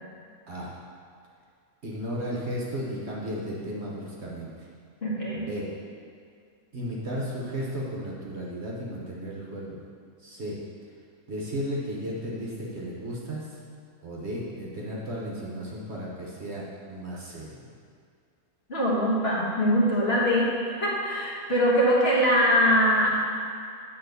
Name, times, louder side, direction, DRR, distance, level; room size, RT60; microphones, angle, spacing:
voice 1, 1.8-4.5 5.3-5.7 6.7-9.8 10.2-10.6 11.3-13.5 14.0-17.7, equal, 45° right, -4 dB, 1.3 m, -34 dB
voice 2, 5.0-5.4 18.7-20.5 20.8-23.2, equal, 40° left, -6 dB, 1.6 m, -22 dB
8.6 x 3.7 x 6.7 m, 2.3 s
omnidirectional pair, 1.6 m